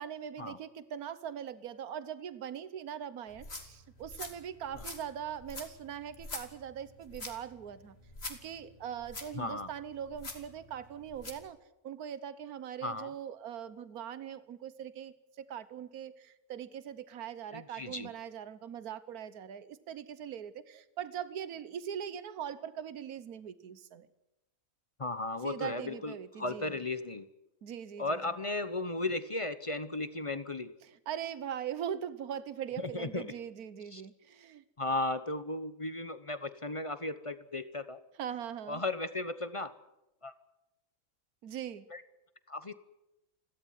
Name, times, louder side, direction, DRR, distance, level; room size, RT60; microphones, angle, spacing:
voice 1, 0.0-8.0 8.3-11.6 11.8-24.1 25.4-26.8 27.6-28.2 30.8-34.6 38.2-38.8 41.4-41.9, right 9 dB, 80° right, 14 dB, 1.5 m, -41 dB
sound 1, 3.3-11.5, left 2 dB, 45° left, 2.8 m, -46 dB
voice 2, 9.3-9.7 12.8-13.1 17.5-18.1 25.0-27.3 28.0-30.7 32.8-33.3 33.9-34.0 34.8-38.0 38.7-39.7 40.2-40.3 41.9-42.0 42.5-42.7, left 2 dB, 25° left, 12 dB, 0.9 m, -35 dB
29.5 x 13.0 x 9.4 m, 0.95 s
omnidirectional pair, 1.5 m